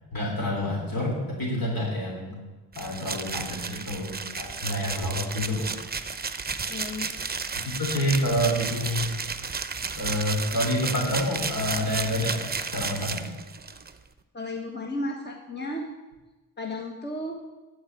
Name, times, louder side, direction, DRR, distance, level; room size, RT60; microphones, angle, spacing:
voice 1, 0.1-2.4 2.7-5.7 7.8-9.1 10.0-13.3, equal, 60° left, -2 dB, 3.3 m, -28 dB
sound 1, 2.7-13.9, right 5 dB, 25° right, 0.8 m, -33 dB
voice 2, 6.7-7.1 14.3-15.9 16.6-17.4, left 1 dB, 25° left, 1 dB, 1.4 m, -33 dB
12.5 x 4.9 x 7.9 m, 1.2 s
cardioid pair, 60°, 39 cm